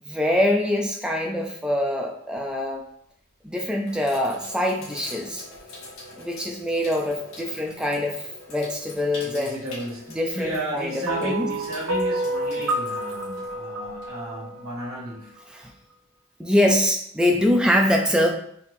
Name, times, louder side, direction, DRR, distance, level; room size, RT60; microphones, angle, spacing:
voice 1, 0.0-2.8 3.4-5.4 6.2-9.6 10.1-11.5 15.5-15.7 16.4-18.3, left 1 dB, 5° right, 1 dB, 0.5 m, -24 dB
Sink (filling or washing), 2.6-2.8 3.4-14.3, left 2 dB, 60° left, 1.5 m, -44 dB
voice 2, 9.2-15.3, right 1 dB, 60° right, -7 dB, 1.6 m, -33 dB
sound 1, 11.1-15.4, right 1 dB, 85° right, 0.6 m, -29 dB
4.3 x 3.6 x 2.7 m, 0.69 s
head